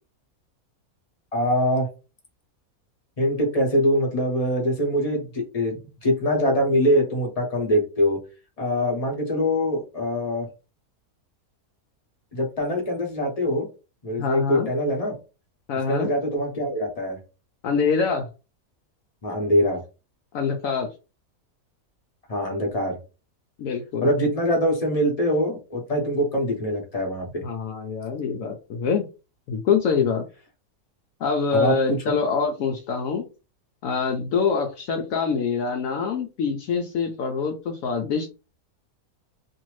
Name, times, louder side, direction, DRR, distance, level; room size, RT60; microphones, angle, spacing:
voice 1, 1.3-1.9 3.2-8.2 8.6-10.5 12.3-13.7 14.0-15.2 15.9-17.2 19.2-19.8 22.3-23.0 24.0-27.4 31.5-32.2, equal, 30° left, 1 dB, 0.8 m, -23 dB
voice 2, 14.2-14.7 15.7-16.1 17.6-18.3 20.3-20.9 23.6-24.1 27.4-29.1 29.5-30.2 31.2-33.2 33.8-38.3, left 5 dB, 75° left, 2 dB, 0.9 m, -25 dB
2.7 x 2.6 x 3.0 m, 0.31 s
omnidirectional pair, 1.5 m